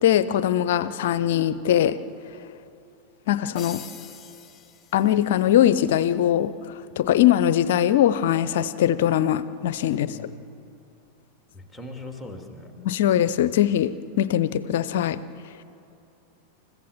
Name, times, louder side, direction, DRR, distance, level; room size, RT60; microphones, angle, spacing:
voice 1, 0.0-2.0 3.3-3.8 4.9-6.5 7.0-10.2 12.8-15.2, left 11 dB, 55° left, 16 dB, 0.7 m, -21 dB
sound 1, 3.6-5.6, left 8 dB, 20° left, 1.6 m, -44 dB
voice 2, 9.9-10.4 11.5-12.7, left 1 dB, ahead, 3 dB, 2.9 m, -40 dB
29.0 x 15.0 x 7.2 m, 2.7 s
figure-of-eight pair, 90°, 0 cm